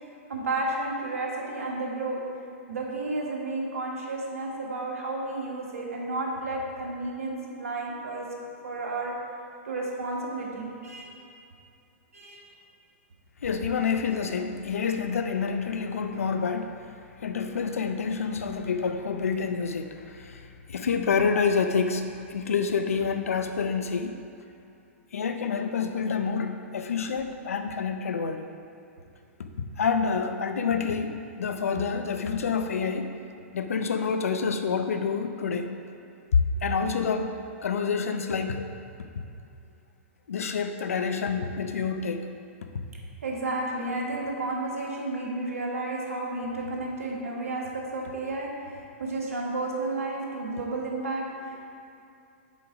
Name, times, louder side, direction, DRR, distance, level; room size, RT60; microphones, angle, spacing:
voice 1, 0.3-2.2 2.7-8.2 8.6-9.1 9.6-11.1 12.1-12.5 43.2-51.7, right 2 dB, 85° right, -2 dB, 1.5 m, -32 dB
voice 2, 13.4-16.9 17.2-24.2 25.1-28.4 29.8-33.1 33.5-35.7 36.3-37.3 37.6-38.7 40.3-42.2, left 5 dB, 85° left, 7 dB, 0.6 m, -28 dB
6.9 x 4.7 x 5.1 m, 2.6 s
hypercardioid pair, 120°, 8 cm